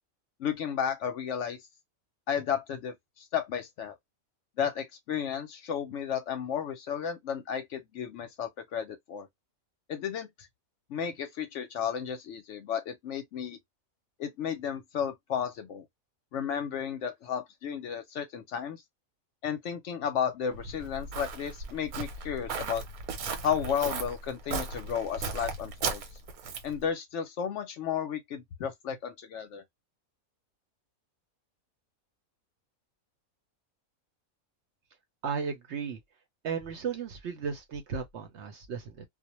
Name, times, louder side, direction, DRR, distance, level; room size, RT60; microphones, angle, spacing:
voice 1, 0.4-1.7 2.3-4.0 4.6-9.3 9.9-10.5 10.9-13.6 14.2-15.8 16.3-18.8 19.4-22.8 23.4-26.0 26.6-29.6, left 8 dB, 65° left, 0.8 m, -33 dB
Walk footsteps, 20.5-26.8, right 4 dB, 85° right, 1.2 m, -36 dB
voice 2, 35.2-36.0 36.4-39.0, right 6 dB, 65° right, 0.8 m, -35 dB
2.4 x 2.1 x 2.8 m
omnidirectional pair, 1.5 m